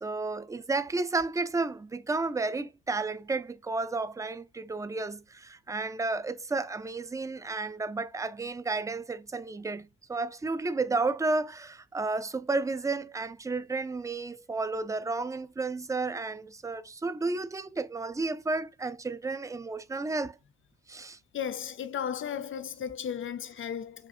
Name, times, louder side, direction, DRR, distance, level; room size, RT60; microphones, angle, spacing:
voice 1, 0.0-20.4 20.9-21.2, right 3 dB, 10° right, 0.3 m, -32 dB
voice 2, 21.3-24.1, left 8 dB, 45° left, 0.5 m, -35 dB
4.9 x 2.4 x 2.6 m
cardioid pair, 90°, 30 cm